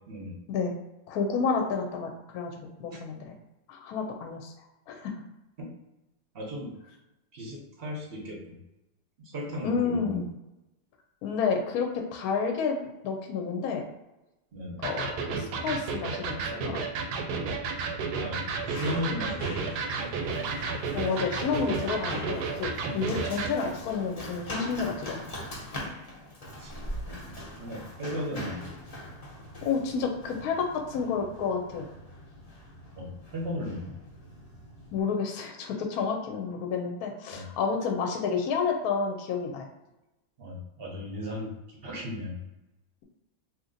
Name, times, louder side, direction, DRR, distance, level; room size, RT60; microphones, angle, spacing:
voice 1, 0.1-0.4 5.6-5.7 6.3-6.7 7.3-8.4 9.2-10.2 14.5-14.8 18.2-19.7 23.0-23.2 26.6-26.7 27.0-28.6 33.0-34.0 37.3-37.5 40.4-41.5 41.8-42.4, left 1 dB, 55° right, -1 dB, 0.7 m, -36 dB
voice 2, 1.1-2.5 2.8-3.3 3.7-4.5 4.9-5.2 9.6-10.3 11.2-13.9 14.8-16.8 20.9-25.3 29.6-31.9 34.9-39.7, left 5 dB, 75° left, 3 dB, 1.0 m, -30 dB
Electric guitar, 14.8-23.6, right 4 dB, 80° right, 1.1 m, -32 dB
Run, 17.7-35.0, left 1 dB, 45° left, 0.4 m, -42 dB
2.9 x 2.5 x 3.8 m, 0.98 s
omnidirectional pair, 1.7 m